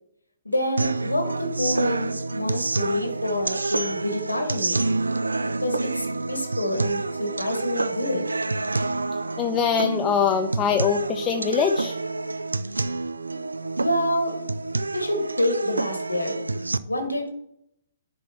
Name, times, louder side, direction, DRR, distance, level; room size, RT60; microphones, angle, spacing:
voice 1, 0.4-4.9 5.6-8.3 13.8-14.3 14.9-16.4 16.9-17.3, left 1 dB, 90° left, 5 dB, 1.6 m, -27 dB
sound 1, 0.8-16.8, right 3 dB, 80° right, 0.4 m, -28 dB
voice 2, 9.4-11.9, left 7 dB, 20° left, 5 dB, 0.5 m, -23 dB
10.0 x 4.3 x 4.4 m, 0.75 s
figure-of-eight pair, 120°, 0 cm